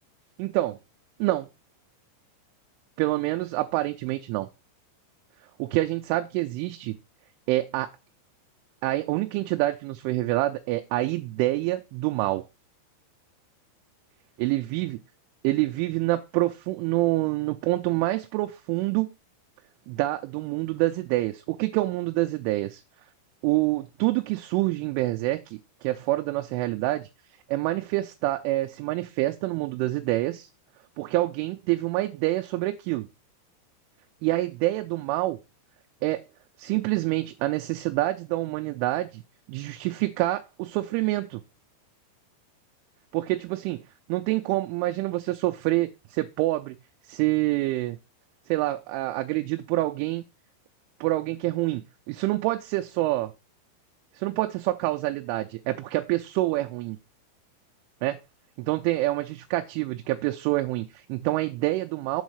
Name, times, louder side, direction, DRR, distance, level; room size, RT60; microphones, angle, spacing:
voice 1, 0.4-0.8 1.2-1.5 3.0-4.5 5.6-7.0 7.5-7.9 8.8-12.4 14.4-15.0 15.4-19.1 19.9-22.8 23.4-27.1 27.5-30.5 31.0-33.1 34.2-35.4 36.0-36.2 36.6-39.2 39.5-41.4 43.1-43.8 44.1-46.8 47.1-48.0 48.5-50.2 51.0-53.3 54.2-57.0 58.0-58.2 58.6-62.2, right 18 dB, 85° right, 3.1 m, -27 dB
7.4 x 4.0 x 6.4 m
omnidirectional pair, 5.5 m